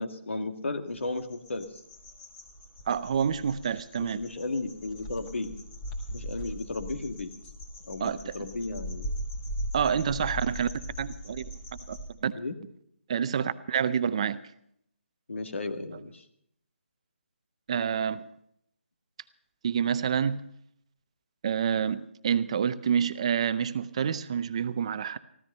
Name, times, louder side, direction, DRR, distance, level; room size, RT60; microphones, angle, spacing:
voice 1, 0.0-1.7 4.0-5.5 6.1-7.3 7.9-9.1 12.3-12.6 15.3-16.2, left 3 dB, 80° left, 1.8 m, -34 dB
sound 1, 1.0-12.1, equal, 20° left, 1.8 m, -39 dB
voice 2, 2.9-4.2 8.0-8.5 9.7-10.7 11.0-11.5 11.9-12.3 13.1-14.4 17.7-18.2 19.6-20.5 21.4-25.2, right 7 dB, 30° right, 0.5 m, -28 dB
15.0 x 13.0 x 5.5 m
hypercardioid pair, 170°, 7 cm